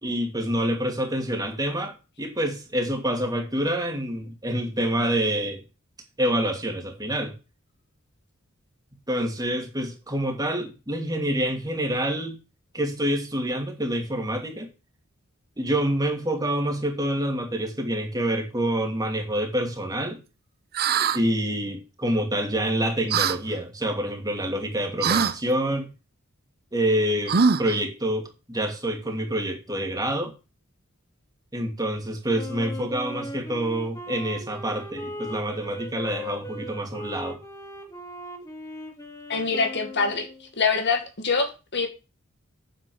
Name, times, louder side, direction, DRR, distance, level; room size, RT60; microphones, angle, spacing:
voice 1, 0.0-5.6 6.2-7.3 9.1-12.4 12.7-14.7 15.6-20.2 21.1-25.9 26.7-30.3 31.5-37.4, right 1 dB, 15° right, 2.7 m, -27 dB
sound 1, 20.7-21.2 23.1-23.4 25.0-25.4 27.3-27.8, right 6 dB, 45° right, 0.8 m, -22 dB
Wind instrument woodwind instrument, 32.3-40.5, left 1 dB, 15° left, 3.1 m, -38 dB
voice 2, 39.3-40.3 40.6-41.9, left 4 dB, 55° left, 2.1 m, -24 dB
9.5 x 7.3 x 7.1 m
head